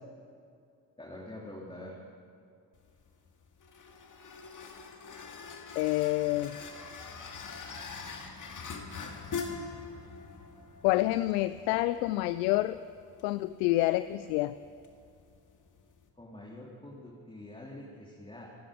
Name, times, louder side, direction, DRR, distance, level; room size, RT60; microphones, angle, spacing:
voice 1, 1.0-2.0 16.2-18.5, left 1 dB, 10° left, -4 dB, 3.1 m, -45 dB
sound 1, 2.7-16.1, left 5 dB, 40° left, 2.1 m, -44 dB
voice 2, 5.8-6.6 10.8-12.8 13.2-14.5, left 17 dB, 80° left, 14 dB, 0.6 m, -28 dB
27.0 x 9.9 x 5.1 m, 2.5 s
hypercardioid pair, 60°, 48 cm